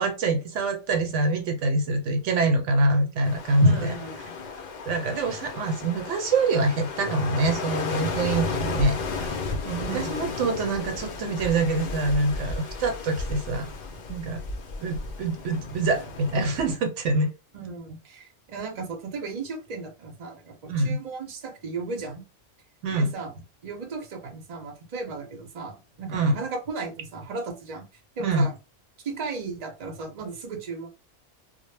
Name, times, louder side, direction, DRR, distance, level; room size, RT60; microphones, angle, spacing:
voice 1, 0.0-4.0 4.9-13.7 14.1-14.4 14.8-17.3 20.7-21.0 22.8-23.1 26.1-26.4 28.2-28.5, right 2 dB, 75° right, 0.9 m, -25 dB
sound 1, 3.2-16.8, left 4 dB, 65° left, 0.4 m, -33 dB
voice 2, 3.6-4.2 9.7-10.3 17.5-22.2 22.9-23.3 23.6-27.9 28.2-28.5 29.0-30.9, right 4 dB, 40° right, 0.6 m, -35 dB
2.1 x 2.0 x 3.1 m
omnidirectional pair, 1.3 m